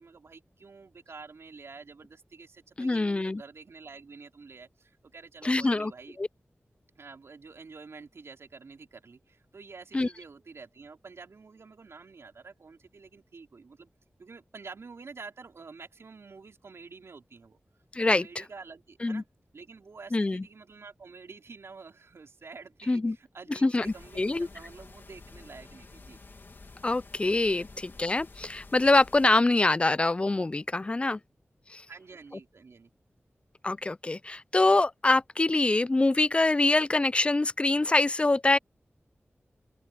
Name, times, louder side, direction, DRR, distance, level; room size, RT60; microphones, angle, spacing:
voice 1, 0.0-6.2 7.0-13.9 14.2-17.6 18.1-19.3 19.5-26.2 27.5-27.7 31.9-32.9, right 4 dB, 80° right, 4.2 m, -48 dB
voice 2, 2.8-3.4 5.4-5.9 6.2-6.3 9.9-10.1 17.9-18.4 19.0-19.2 20.1-20.4 22.9-23.2 23.6-24.5 26.8-31.2 31.7-31.8 33.6-38.6, left 2 dB, 25° left, 0.3 m, -25 dB
sound 1, 23.8-29.3, left 3 dB, 55° left, 2.1 m, -50 dB
open air
wide cardioid pair, 95°, 4 cm